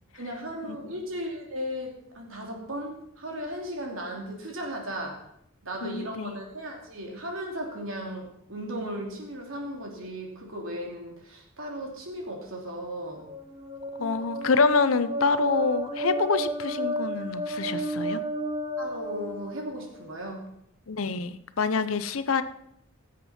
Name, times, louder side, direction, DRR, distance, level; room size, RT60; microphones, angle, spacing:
voice 1, 0.1-5.3 5.6-13.3 18.8-20.4, equal, 80° right, 0 dB, 2.9 m, -36 dB
voice 2, 5.8-6.3 14.0-18.2 20.9-22.4, left 4 dB, 85° left, 12 dB, 0.7 m, -26 dB
sound 1, 13.1-20.0, right 1 dB, 25° right, 1.1 m, -32 dB
16.5 x 7.5 x 4.3 m, 0.75 s
head